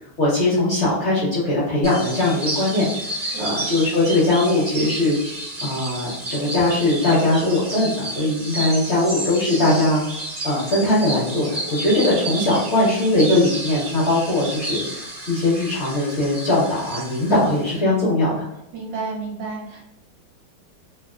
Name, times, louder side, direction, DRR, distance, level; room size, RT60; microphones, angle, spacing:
voice 1, 0.2-2.9 3.4-5.2 5.6-10.0 10.4-18.5, left 2 dB, 65° left, -8 dB, 0.7 m, -20 dB
sound 1, 1.8-17.8, right 1 dB, 35° right, 1.0 m, -31 dB
voice 2, 3.2-3.5 18.7-19.9, right 4 dB, 70° right, -3 dB, 1.3 m, -31 dB
3.3 x 2.4 x 2.3 m, 0.85 s
omnidirectional pair, 2.3 m